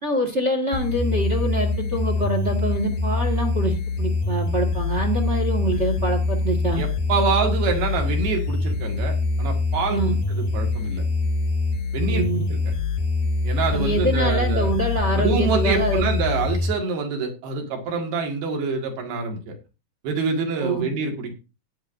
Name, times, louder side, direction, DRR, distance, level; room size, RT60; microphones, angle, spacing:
voice 1, 0.0-6.8 9.9-10.2 12.0-12.4 13.7-16.1 20.6-20.9, right 1 dB, 40° right, 2 dB, 1.0 m, -25 dB
sound 1, 0.7-16.7, left 3 dB, 75° left, 3.1 m, -24 dB
voice 2, 6.8-11.0 11.9-12.2 12.5-12.6 13.4-14.7 15.1-19.5 20.0-21.3, right 4 dB, 90° right, 3 dB, 3.9 m, -26 dB
16.5 x 9.6 x 2.6 m, 0.30 s
omnidirectional pair, 4.2 m